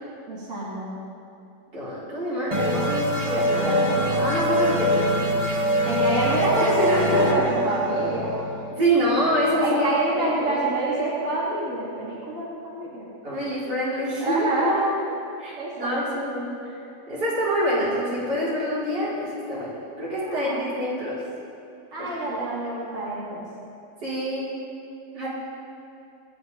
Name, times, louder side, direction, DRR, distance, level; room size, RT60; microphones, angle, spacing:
voice 1, 0.3-1.0 5.9-8.3 9.6-13.1 14.2-14.8 15.6-16.2 20.2-20.7 21.9-23.5, right 2 dB, 45° right, -8 dB, 3.2 m, -26 dB
voice 2, 1.7-5.1 5.7-5.8 8.8-9.8 10.2-10.6 13.2-14.5 15.4-16.7 17.1-21.2 22.0-22.4 24.0-24.5 25.1-25.3, equal, 75° right, -9 dB, 5.1 m, -26 dB
sound 1, 2.5-9.8, equal, 25° right, 1.5 m, -24 dB
26.5 x 9.5 x 4.2 m, 2.7 s
omnidirectional pair, 1.9 m